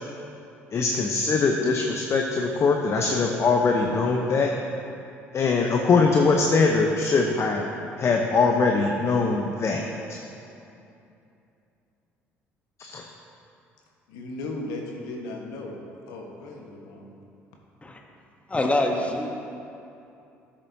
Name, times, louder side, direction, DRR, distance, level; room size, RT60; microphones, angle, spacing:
voice 1, 0.7-4.5 5.3-7.7 8.0-9.8 12.8-13.0, left 4 dB, 45° left, 1 dB, 0.8 m, -22 dB
voice 2, 14.1-15.8 16.1-17.0, left 2 dB, 70° left, 0 dB, 1.3 m, -36 dB
voice 3, 18.5-19.3, left 1 dB, 20° left, 2 dB, 1.0 m, -24 dB
13.5 x 7.3 x 2.8 m, 2.8 s
hypercardioid pair, 55°, 7 cm